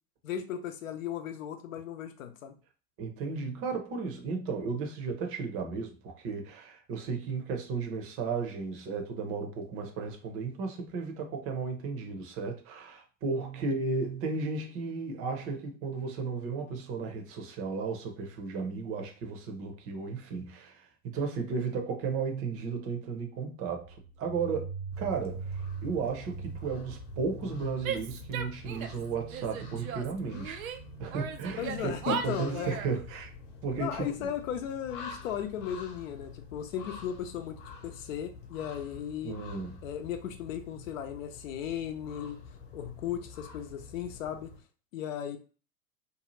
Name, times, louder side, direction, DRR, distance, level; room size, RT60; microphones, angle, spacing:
voice 1, 0.2-2.6 31.6-32.8 33.8-39.4 39.8-42.4 42.7-44.5 44.9-45.4, left 9 dB, 60° left, 0.6 m, -36 dB
voice 2, 3.0-30.7 31.0-33.3 33.6-34.3 39.2-39.7, right 4 dB, 30° right, 0.7 m, -34 dB
sound 1, 23.8-35.3, right 4 dB, 20° left, 0.5 m, -44 dB
sound 2, 24.9-44.6, left 5 dB, 40° left, 0.9 m, -48 dB
Female speech woman speaking / Yell, 27.8-29.0 29.3-30.8 31.1-33.0, right 7 dB, 65° right, 0.6 m, -37 dB
2.7 x 2.3 x 3.0 m
hypercardioid pair, 105°, 44 cm